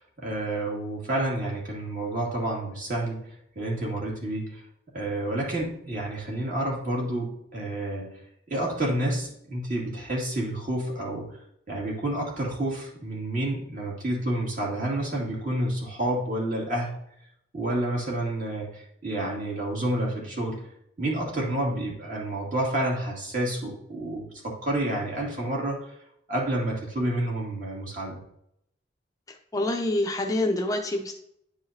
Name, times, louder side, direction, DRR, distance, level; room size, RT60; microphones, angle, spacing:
voice 1, 0.0-4.6 4.9-8.1 8.5-11.3 11.7-16.9 17.5-20.6 21.0-25.8 26.3-28.2, right 1 dB, 50° right, -3 dB, 2.4 m, -29 dB
voice 2, 29.3-31.1, left 1 dB, 20° left, 3 dB, 0.5 m, -27 dB
10.0 x 4.8 x 2.7 m, 0.73 s
head